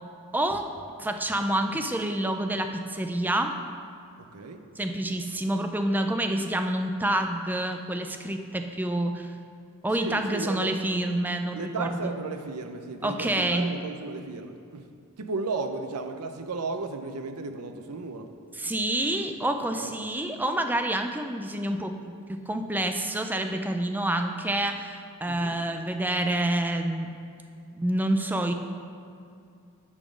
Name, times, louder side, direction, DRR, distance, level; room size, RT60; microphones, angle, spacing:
voice 1, 0.3-3.6 4.8-9.3 9.8-12.1 13.0-13.7 18.6-27.1 27.7-28.5, right 1 dB, 10° right, 6 dB, 0.4 m, -28 dB
voice 2, 4.3-4.6 9.9-10.8 11.5-14.9 15.2-18.3 19.7-19.9 25.3-25.5, right 3 dB, 90° right, 7 dB, 0.6 m, -34 dB
9.7 x 4.2 x 6.2 m, 2.4 s
head